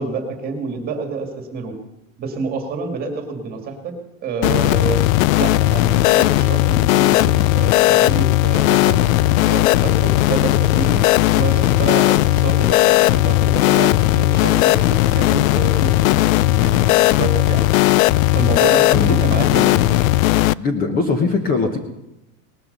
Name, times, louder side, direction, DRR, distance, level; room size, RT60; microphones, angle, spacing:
voice 1, 0.0-1.8 2.2-4.0 4.2-5.0 5.4-11.0 11.3-17.7 18.3-20.0, right 4 dB, 20° right, 5 dB, 2.1 m, -28 dB
sound 1, 4.4-20.5, left 17 dB, 75° left, 0.5 m, -16 dB
voice 2, 20.6-21.8, left 4 dB, 20° left, 6 dB, 1.1 m, -20 dB
19.0 x 13.5 x 5.4 m, 0.94 s
supercardioid pair, 165°, 41 cm